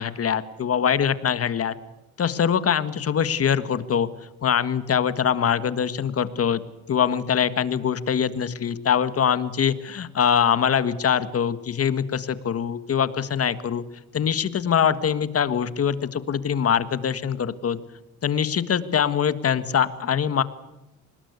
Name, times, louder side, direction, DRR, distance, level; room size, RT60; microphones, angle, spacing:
voice 1, 0.0-1.7 2.2-4.1 4.4-6.6 6.9-13.8 14.1-17.8 18.2-20.4, left 8 dB, 50° left, 13 dB, 1.7 m, -23 dB
25.5 x 20.0 x 8.3 m, 0.97 s
cardioid pair, 90°, 30 cm